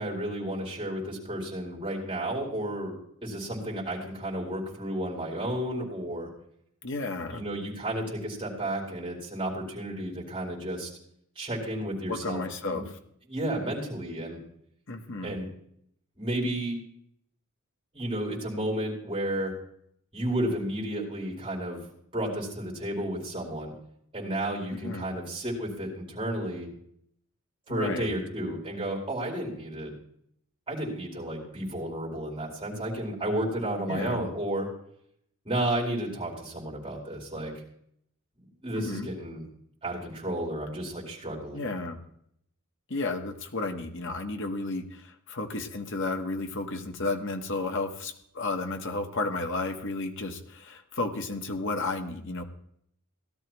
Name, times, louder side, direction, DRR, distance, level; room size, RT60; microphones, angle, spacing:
voice 1, 0.0-3.0 3.2-6.3 7.3-10.9 11.4-12.8 13.3-14.4 15.2-15.5 16.2-16.8 17.9-19.5 20.1-21.8 22.1-23.7 24.1-26.7 27.7-29.9 30.7-34.7 35.4-37.5 38.6-39.4 39.8-41.7, right 1 dB, 25° right, -3 dB, 4.4 m, -32 dB
voice 2, 6.8-7.4 12.1-12.8 14.9-15.3 24.7-25.1 27.7-28.1 33.9-34.2 38.8-39.1 41.5-42.0 42.9-52.4, left 2 dB, 60° left, 5 dB, 1.4 m, -32 dB
17.5 x 12.5 x 3.1 m, 0.70 s
head